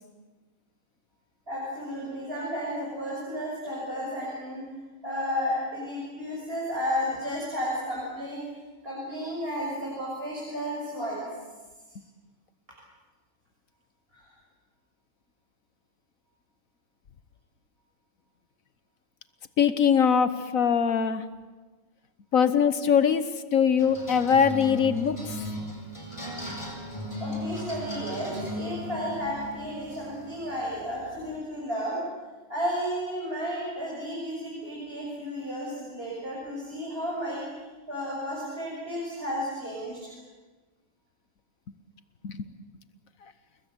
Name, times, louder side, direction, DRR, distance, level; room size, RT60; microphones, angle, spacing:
voice 1, 1.5-4.6 5.0-8.4 8.8-11.3 14.1-14.3 27.2-32.0 32.5-37.4 37.9-40.2, equal, 25° right, -5 dB, 6.9 m, -33 dB
voice 2, 19.6-21.2 22.3-23.2 23.5-25.4 42.2-42.5, left 7 dB, 50° left, 12 dB, 1.3 m, -22 dB
sound 1, 23.8-31.4, left 1 dB, 15° left, 7.3 m, -37 dB
29.5 x 21.0 x 8.1 m, 1.3 s
omnidirectional pair, 2.2 m